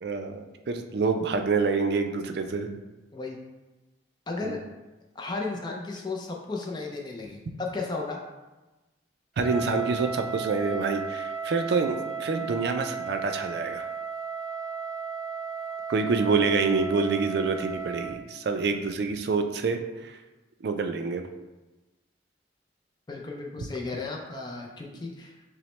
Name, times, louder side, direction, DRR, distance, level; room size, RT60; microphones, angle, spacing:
voice 1, 0.0-2.8 4.4-4.6 9.4-13.9 15.9-20.2 20.6-21.3, right 4 dB, 60° right, 6 dB, 0.3 m, -27 dB
voice 2, 4.3-4.6 5.2-8.2 23.1-25.3, left 3 dB, 25° left, 0 dB, 0.3 m, -34 dB
Wind instrument woodwind instrument, 9.4-18.3, right 6 dB, 5° right, 1.3 m, -35 dB
5.7 x 2.1 x 3.1 m, 1.1 s
head